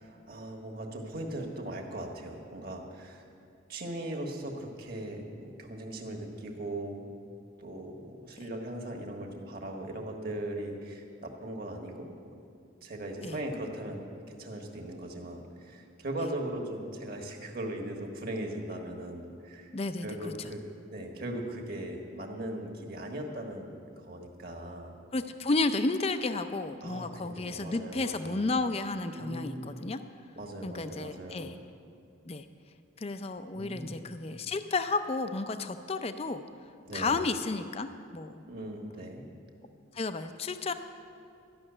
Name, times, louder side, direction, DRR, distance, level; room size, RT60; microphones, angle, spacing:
voice 1, 0.0-3.2 3.7-7.1 7.6-12.1 12.8-19.7 20.0-20.6 20.9-25.0 26.8-28.5 29.2-29.9 30.3-31.5 33.5-34.1 36.8-37.2 38.4-39.2, right 1 dB, 50° right, 1 dB, 1.5 m, -39 dB
voice 2, 19.7-20.5 25.1-30.0 30.6-31.6 32.3-32.5 33.0-36.4 36.9-38.4 39.9-40.7, left 3 dB, 30° left, 9 dB, 0.4 m, -32 dB
13.0 x 6.5 x 9.8 m, 2.5 s
head